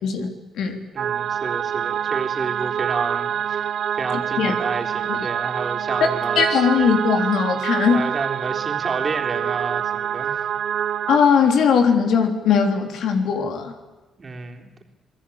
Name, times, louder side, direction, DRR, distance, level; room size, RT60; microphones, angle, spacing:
voice 1, 0.0-0.8 4.4-4.5 5.1-5.2 6.3-8.1 11.1-13.7, left 6 dB, 75° left, 5 dB, 3.3 m, -19 dB
voice 2, 0.9-6.7 7.9-10.5 14.2-14.8, right 4 dB, 35° right, 2 dB, 3.7 m, -30 dB
sound 1, 1.0-11.2, right 9 dB, 65° right, 0.9 m, -26 dB
28.0 x 19.5 x 8.8 m, 1.1 s
cardioid pair, 90°, 0 cm